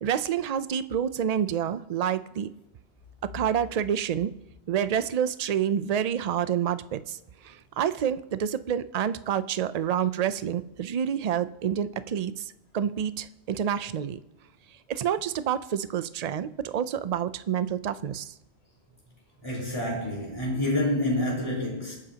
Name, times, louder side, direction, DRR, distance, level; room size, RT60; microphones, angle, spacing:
voice 1, 0.0-2.5 3.2-4.3 4.7-7.2 7.4-14.2 14.9-18.3, right 9 dB, 50° right, 0.5 m, -28 dB
voice 2, 19.4-21.9, left 1 dB, 25° left, 4.3 m, -28 dB
25.0 x 9.9 x 2.9 m
omnidirectional pair, 1.1 m